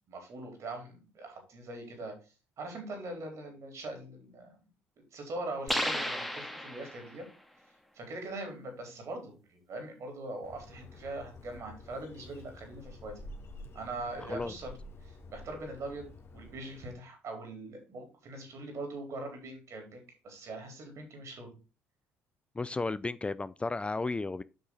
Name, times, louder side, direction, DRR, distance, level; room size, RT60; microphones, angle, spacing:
voice 1, 0.1-2.1 2.6-4.6 5.1-7.3 7.9-13.2 13.7-14.7 15.0-21.6, right 2 dB, 55° right, 4.2 m, -42 dB
sound 1, 5.7-7.2, equal, ahead, 1.8 m, -33 dB
Bird, 10.4-16.9, left 2 dB, 45° left, 2.1 m, -50 dB
voice 2, 14.2-14.5 22.6-24.4, left 3 dB, 20° left, 0.4 m, -33 dB
8.1 x 6.1 x 4.0 m
hypercardioid pair, 55°, 6 cm